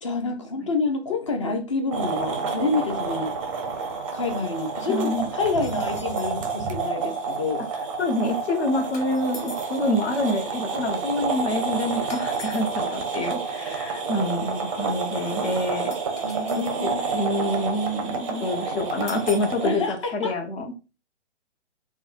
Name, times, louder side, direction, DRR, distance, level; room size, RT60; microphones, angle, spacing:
voice 1, 0.0-3.3 4.1-7.6 16.2-17.1 19.6-20.3, left 3 dB, 30° left, 0.4 m, -28 dB
sound 1, 1.9-19.8, right 5 dB, 30° right, 0.5 m, -29 dB
voice 2, 4.9-5.3 8.0-15.9 16.6-20.7, left 1 dB, 60° left, 1.0 m, -27 dB
sound 2, 5.6-6.4 8.9-9.8 12.1-12.8 15.9-16.9 19.1-19.6, left 2 dB, 80° left, 1.3 m, -42 dB
3.4 x 2.2 x 2.4 m
figure-of-eight pair, 135°, 35 cm